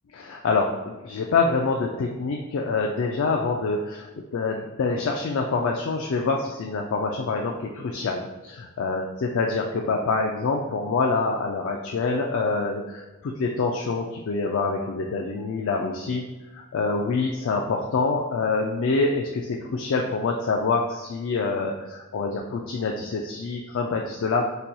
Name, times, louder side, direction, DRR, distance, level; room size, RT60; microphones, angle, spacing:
voice 1, 0.1-16.2 16.5-24.5, left 4 dB, 60° left, 1 dB, 0.3 m, -26 dB
4.2 x 2.2 x 2.6 m, 1.1 s
head